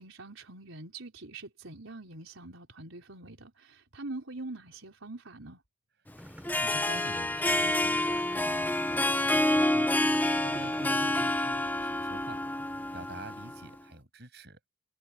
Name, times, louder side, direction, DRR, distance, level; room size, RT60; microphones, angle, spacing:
voice 1, 0.0-5.6, right 2 dB, 90° right, 4.6 m, -44 dB
sound 1, 6.2-11.8, equal, 5° right, 5.3 m, -49 dB
Harp, 6.3-13.7, left 1 dB, 10° left, 0.8 m, -28 dB
voice 2, 6.5-9.9 10.4-12.4 12.9-14.6, right 1 dB, 55° right, 7.9 m, -46 dB
head